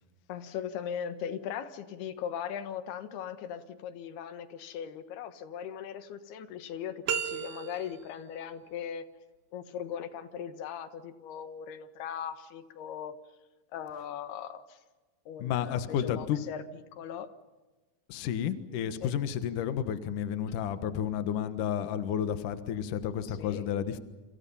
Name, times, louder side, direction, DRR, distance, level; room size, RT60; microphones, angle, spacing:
voice 1, 0.3-9.0 9.5-13.2 13.7-14.8 15.3-16.6 16.9-17.3 19.0-19.1 23.2-23.6, left 8 dB, 85° left, 10 dB, 3.4 m, -39 dB
sound 1, 7.1-8.2, right 8 dB, 65° right, 2.6 m, -33 dB
voice 2, 15.4-16.4 18.1-24.0, left 9 dB, 65° left, 10 dB, 2.7 m, -31 dB
29.0 x 26.5 x 5.6 m, 1.2 s
omnidirectional pair, 4.4 m